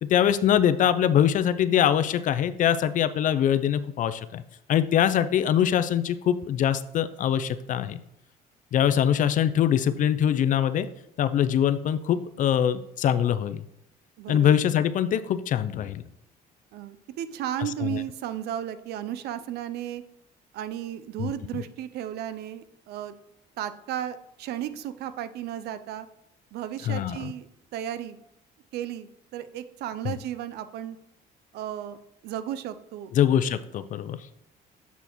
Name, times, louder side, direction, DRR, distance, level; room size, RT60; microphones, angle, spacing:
voice 1, 0.0-4.4 4.7-8.0 8.7-10.9 11.2-13.6 14.3-16.0 17.8-18.0 21.2-21.3 26.9-27.3 30.0-30.1 33.1-34.2, left 9 dB, 50° left, 13 dB, 0.4 m, -23 dB
voice 2, 14.2-14.6 16.7-20.0 20.5-23.1 23.6-26.1 26.5-28.2 28.7-31.0 31.5-32.0 32.2-33.1, right 11 dB, 75° right, 12 dB, 0.5 m, -34 dB
6.9 x 6.1 x 3.0 m, 0.81 s
cardioid pair, 110°, 17 cm